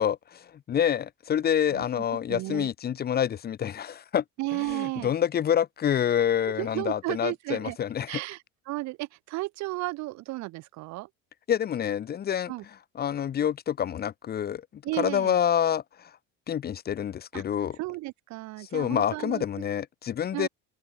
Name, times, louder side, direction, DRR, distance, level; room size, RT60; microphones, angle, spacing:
voice 1, 0.0-4.2 4.7-8.2 11.5-12.5 13.0-14.6 15.0-15.8 16.5-17.8 18.6-20.5, left 9 dB, 30° left, 1.4 m, -27 dB
voice 2, 2.3-2.7 4.4-5.1 6.4-7.8 8.1-11.1 12.5-12.6 14.8-15.4 17.3-17.4 17.8-19.4 20.3-20.5, right 20 dB, 65° right, 3.0 m, -33 dB
cardioid pair, 150°, 30 cm